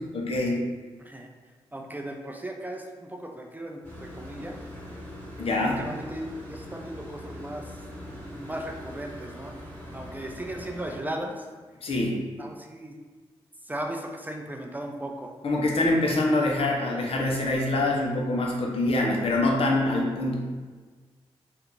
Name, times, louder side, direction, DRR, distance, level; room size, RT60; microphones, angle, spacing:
voice 1, 0.1-0.6 5.4-5.8 11.8-12.2 15.4-20.3, left 2 dB, 60° left, -1 dB, 0.7 m, -25 dB
voice 2, 1.0-1.3 1.7-4.6 5.6-7.8 8.2-9.5 9.9-11.5 12.4-13.0 13.6-15.3, right 1 dB, 15° right, 2 dB, 0.4 m, -37 dB
sound 1, 3.8-11.0, equal, 15° left, 1.4 m, -42 dB
2.7 x 2.5 x 3.7 m, 1.4 s
supercardioid pair, 55°, 11 cm